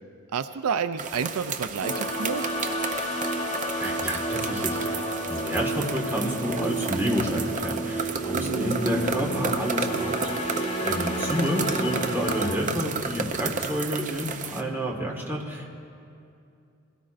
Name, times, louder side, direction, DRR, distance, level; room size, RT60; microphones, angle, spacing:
voice 1, 0.3-2.4 8.3-8.7, right 6 dB, 90° right, 11 dB, 0.5 m, -30 dB
sound 1, 1.0-14.6, right 5 dB, 35° right, 0.6 m, -33 dB
sound 2, 1.8-12.6, right 1 dB, 30° left, 1.1 m, -31 dB
voice 2, 3.4-10.3 10.8-15.8, equal, 10° right, -2 dB, 1.6 m, -29 dB
21.5 x 17.0 x 2.5 m, 2.5 s
head